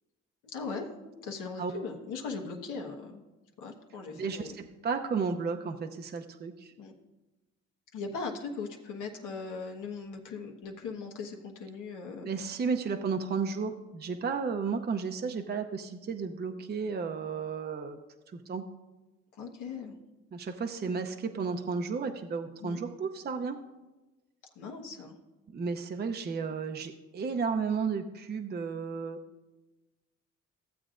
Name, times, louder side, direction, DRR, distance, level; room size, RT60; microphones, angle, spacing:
voice 1, 0.4-3.2 3.6-4.6 6.8-6.9 7.9-12.3 19.4-20.0 22.6-22.8 24.6-25.2, left 4 dB, 90° left, 1 dB, 1.3 m, -39 dB
voice 2, 4.1-6.7 12.2-18.0 18.3-18.6 20.3-23.6 25.5-29.2, right 5 dB, 35° right, 5 dB, 0.6 m, -33 dB
15.0 x 7.8 x 2.5 m, 1.1 s
cardioid pair, 90°, 30 cm